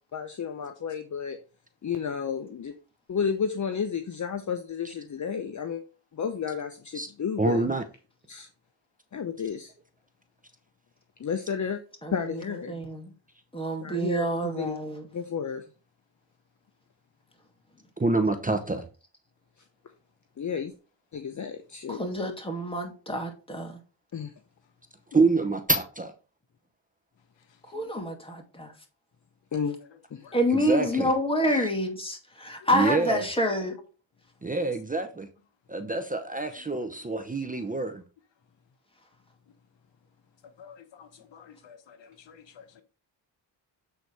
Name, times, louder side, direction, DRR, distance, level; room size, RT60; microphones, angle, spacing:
voice 1, 0.1-1.4 1.8-2.8 3.1-5.8 6.1-7.6 8.3-8.5 9.1-9.7 11.2-11.8 12.1-12.8 13.8-14.8 15.1-15.6 20.4-20.7 21.1-22.0 24.1-24.3 29.5-29.8 30.1-30.3, left 7 dB, 40° left, 0.8 m, -32 dB
voice 2, 7.4-7.8 18.0-18.9 25.1-26.1 30.5-31.1 32.7-33.2 34.4-35.3 35.7-38.0, right 3 dB, 20° right, 0.8 m, -26 dB
voice 3, 12.0-13.1 13.5-15.1 21.9-23.8 27.7-28.7 30.3-33.7, equal, 10° left, 2.5 m, -28 dB
voice 4, 40.6-42.6, left 7 dB, 70° left, 1.2 m, -51 dB
7.9 x 4.1 x 4.7 m
cardioid pair, 85°, 46 cm